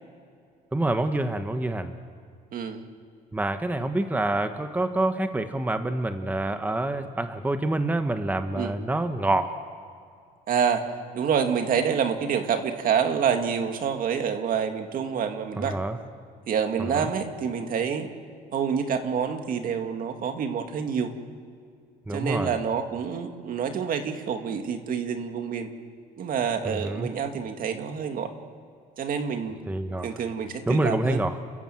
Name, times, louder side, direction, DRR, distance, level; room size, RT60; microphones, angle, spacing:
voice 1, 0.7-1.9 3.3-9.5 15.6-16.0 16.9-17.1 22.1-22.5 26.6-27.1 29.7-30.1 30.7-31.3, right 2 dB, 10° right, 8 dB, 1.2 m, -27 dB
voice 2, 2.5-2.8 8.5-8.7 10.5-10.9 11.1-15.8 16.5-18.1 18.5-21.1 22.1-25.7 26.2-28.3 29.0-29.6 30.0-31.2, right 7 dB, 55° right, 6 dB, 2.1 m, -27 dB
29.5 x 15.0 x 7.8 m, 2.3 s
cardioid pair, 110°, 17 cm